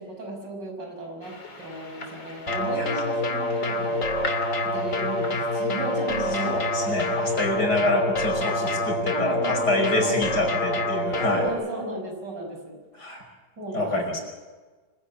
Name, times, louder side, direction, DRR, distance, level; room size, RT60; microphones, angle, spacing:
voice 1, 0.0-4.1 4.6-6.9 7.8-8.1 9.1-10.2 11.2-12.8 13.6-14.2, right 2 dB, 80° right, 2 dB, 6.7 m, -35 dB
sound 1, 1.2-7.4, left 3 dB, 85° left, 4.1 m, -41 dB
sound 2, 2.5-11.5, left 1 dB, 45° left, 2.2 m, -26 dB
voice 2, 6.4-11.5 13.0-13.2 13.7-14.2, left 2 dB, 65° left, 3 dB, 6.0 m, -26 dB
25.0 x 16.5 x 8.6 m, 1.3 s
omnidirectional pair, 1.9 m